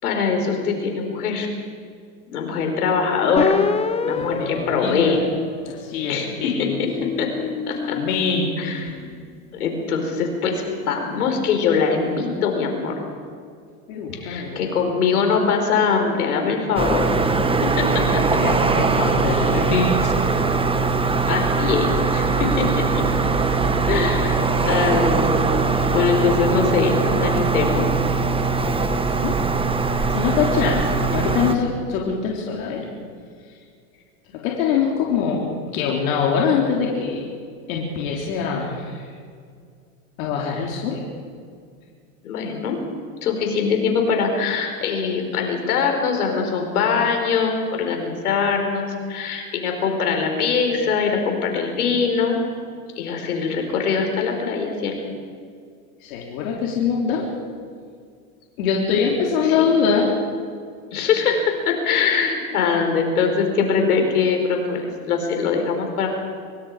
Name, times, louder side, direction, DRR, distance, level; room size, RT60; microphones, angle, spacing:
voice 1, 0.0-1.5 2.3-3.6 4.0-5.2 6.1-6.9 7.2-7.3 7.7-8.0 8.6-8.9 9.5-13.0 14.2-17.1 17.8-18.2 19.2-19.6 21.3-23.0 23.9-25.7 25.9-27.9 42.2-42.8 43.2-52.4 53.0-55.0 59.6-59.7 60.9-66.1, left 5 dB, 85° left, 3 dB, 4.9 m, -22 dB
sound 1, 3.4-6.1 6.6-9.1, left 5 dB, 15° left, 0.9 m, -28 dB
voice 2, 4.1-5.2 5.6-6.8 7.9-8.6 13.9-14.6 18.1-20.1 20.5-20.6 29.1-29.4 30.1-32.9 34.4-35.5 35.7-37.2 37.7-39.1 40.2-41.0 56.0-57.3 58.6-60.1, left 6 dB, 65° left, -2 dB, 3.8 m, -23 dB
sound 2, 16.8-31.5, right 4 dB, 10° right, 1.5 m, -21 dB
24.5 x 23.5 x 5.1 m, 2.2 s
hypercardioid pair, 110°, 44 cm